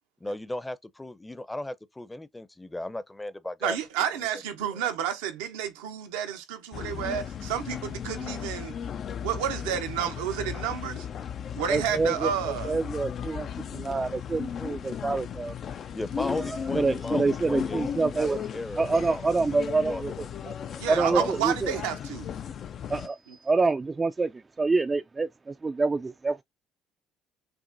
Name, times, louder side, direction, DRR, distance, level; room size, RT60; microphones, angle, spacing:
voice 1, 0.2-3.8 4.2-4.3 15.9-20.8 21.1-21.3, left 1 dB, 15° left, 0.6 m, -36 dB
voice 2, 3.6-8.7 9.2-11.1 11.5-12.8 20.8-22.3 23.3-23.4, right 9 dB, 85° right, 0.8 m, -30 dB
sound 1, 6.7-23.1, left 8 dB, 55° left, 0.4 m, -36 dB
voice 3, 11.7-12.3 12.6-15.5 16.7-18.4 18.8-20.1 20.9-21.7 22.9-23.2 23.4-24.3 24.6-26.4, right 3 dB, 25° right, 0.4 m, -26 dB
6.0 x 2.1 x 2.6 m
hypercardioid pair, 60°, 0 cm